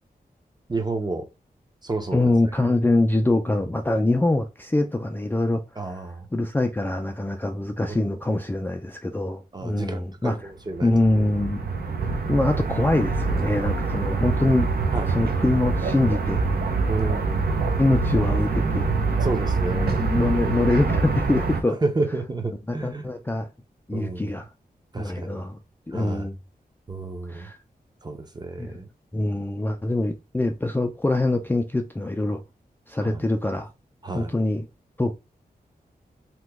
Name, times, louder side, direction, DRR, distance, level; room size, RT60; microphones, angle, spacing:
voice 1, 0.7-1.3 1.8-2.3 5.8-6.3 7.9-8.2 9.5-11.3 14.9-15.2 16.9-17.5 19.2-20.1 21.8-23.2 23.9-24.3 24.9-25.4 25.9-26.3 26.9-27.5 28.0-28.9 33.0-33.2 34.0-34.3, right 3 dB, 25° right, 0.6 m, -31 dB
voice 2, 2.1-5.6 6.3-10.4 10.8-11.7 12.3-14.7 15.1-16.4 17.8-18.9 19.8-21.8 22.7-23.5 23.9-24.5 25.0-25.6 25.9-26.4 27.3-27.6 28.6-28.8 29.1-32.4 32.9-33.7 34.1-34.7 35.0-35.1, left 2 dB, 10° left, 0.3 m, -24 dB
sound 1, 10.7-21.6, right 4 dB, 80° right, 0.6 m, -25 dB
2.9 x 2.2 x 3.4 m
wide cardioid pair, 90°, 16 cm